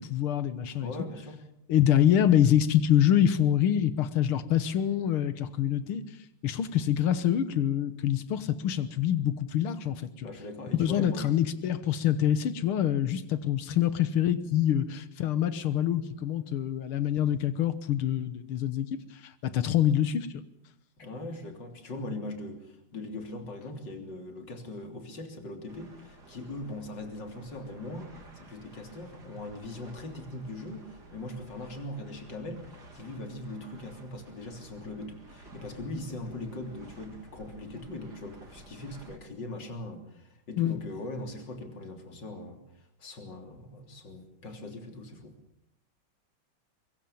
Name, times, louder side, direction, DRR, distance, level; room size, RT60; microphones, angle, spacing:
voice 1, 0.0-0.9 1.7-6.0 6.4-10.3 10.8-20.3 40.6-40.8, left 10 dB, 90° left, 13 dB, 2.1 m, -26 dB
voice 2, 0.8-1.4 10.2-11.3 21.0-45.4, left 1 dB, 55° left, 5 dB, 4.0 m, -40 dB
sound 1, 25.7-39.2, right 2 dB, 50° right, 3.6 m, -53 dB
24.0 x 22.5 x 7.2 m, 0.73 s
omnidirectional pair, 2.3 m